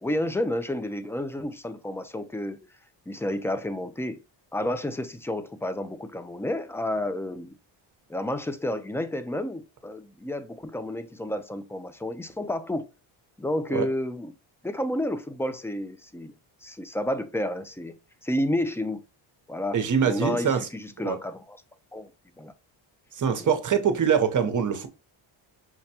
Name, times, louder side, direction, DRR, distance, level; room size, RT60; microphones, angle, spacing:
voice 1, 0.0-2.6 3.1-4.2 4.5-7.6 8.1-12.9 13.4-14.3 14.6-16.3 16.6-19.0 19.5-21.6 21.9-22.1 22.4-22.5 23.4-23.5, left 1 dB, 5° left, 0.3 m, -30 dB
voice 2, 19.7-20.7 21.0-21.2 23.1-24.9, right 7 dB, 40° right, 0.8 m, -24 dB
5.9 x 2.1 x 2.8 m
cardioid pair, 75°, 50 cm